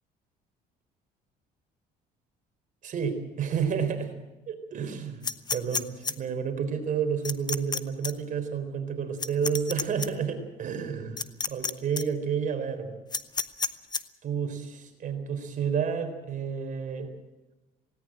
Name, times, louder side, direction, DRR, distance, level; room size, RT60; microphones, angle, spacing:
voice 1, 2.8-4.2 4.5-5.2 5.5-12.9 14.2-17.1, right 7 dB, 50° right, 7 dB, 4.0 m, -30 dB
sound 1, 5.2-6.1 7.2-7.8 8.0-8.1 9.2-10.1 11.2-11.7 12.0-12.1 13.1-14.0, left 5 dB, 25° left, 0.9 m, -29 dB
18.5 x 18.0 x 8.8 m, 1.1 s
cardioid pair, 110°, 17 cm